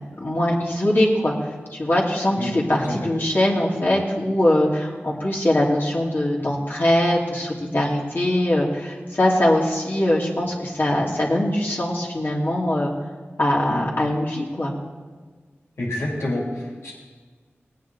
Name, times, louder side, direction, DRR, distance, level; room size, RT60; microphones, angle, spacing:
voice 1, 0.2-1.3 1.7-12.9 13.4-14.7, left 1 dB, 50° left, -4 dB, 2.5 m, -22 dB
voice 2, 15.8-16.9, left 1 dB, 85° left, -4 dB, 3.4 m, -27 dB
18.5 x 9.2 x 4.1 m, 1.4 s
wide cardioid pair, 60°, 4 cm